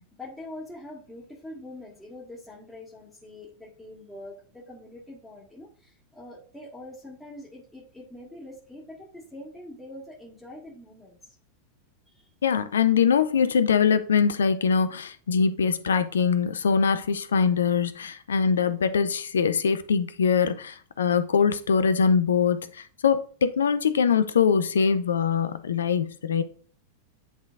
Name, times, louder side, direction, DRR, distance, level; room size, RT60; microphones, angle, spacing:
voice 1, 0.0-11.4 12.1-12.3, left 1 dB, 5° left, 1.8 m, -44 dB
voice 2, 12.4-26.4, left 6 dB, 65° left, 0.5 m, -23 dB
10.5 x 3.8 x 2.4 m
figure-of-eight pair, 90°, 0 cm